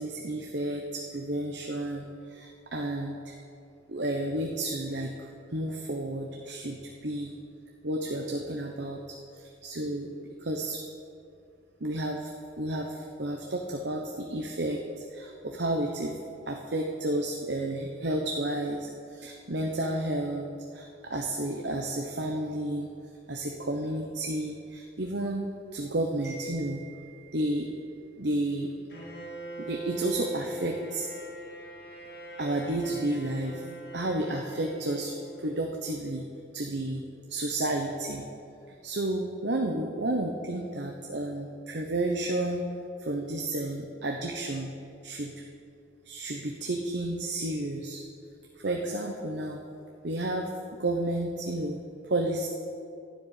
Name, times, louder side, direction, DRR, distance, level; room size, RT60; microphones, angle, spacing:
voice 1, 0.0-3.3 3.9-7.4 7.8-9.0 9.3-10.8 11.8-12.3 12.6-16.2 16.5-22.9 23.3-25.5 25.7-28.7 29.6-31.1 32.4-33.6 33.9-36.3 36.5-37.0 37.3-38.2 38.7-44.7 45.0-45.4 46.0-48.0 48.6-49.6 50.0-50.5 50.8-52.5, right 1 dB, 65° right, 2 dB, 1.0 m, -32 dB
Bowed string instrument, 28.9-35.8, right 1 dB, 60° left, 3.2 m, -42 dB
13.0 x 7.6 x 10.0 m, 2.5 s
head